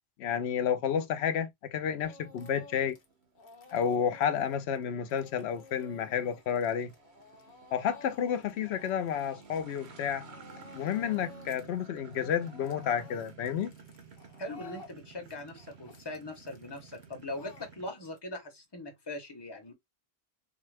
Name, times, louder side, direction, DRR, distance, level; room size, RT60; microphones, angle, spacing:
voice 1, 0.2-3.0 3.7-6.9 7.7-10.3 10.7-13.7, left 8 dB, 90° left, 0.8 m, -31 dB
sound 1, 1.8-17.9, right 5 dB, 85° right, 1.1 m, -53 dB
Speech / Crying sobbing, 2.0-3.1 3.4-10.0 10.3-11.7 12.0-18.2, left 3 dB, 65° left, 1.0 m, -53 dB
voice 2, 14.4-19.7, left 1 dB, 25° left, 1.0 m, -41 dB
3.6 x 2.2 x 3.2 m
omnidirectional pair, 1.1 m